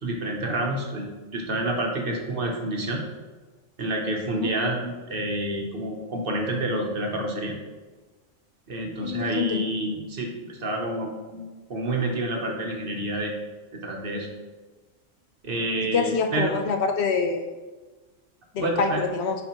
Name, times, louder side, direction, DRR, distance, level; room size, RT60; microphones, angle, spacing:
voice 1, 0.0-3.0 3.8-7.6 8.7-13.3 13.7-14.3 15.4-16.6 18.6-19.0, right 1 dB, 50° right, 1 dB, 1.1 m, -28 dB
voice 2, 9.0-9.6 15.8-17.5 18.5-19.4, left 5 dB, 65° left, 5 dB, 0.8 m, -26 dB
9.6 x 4.2 x 3.0 m, 1.3 s
omnidirectional pair, 1.3 m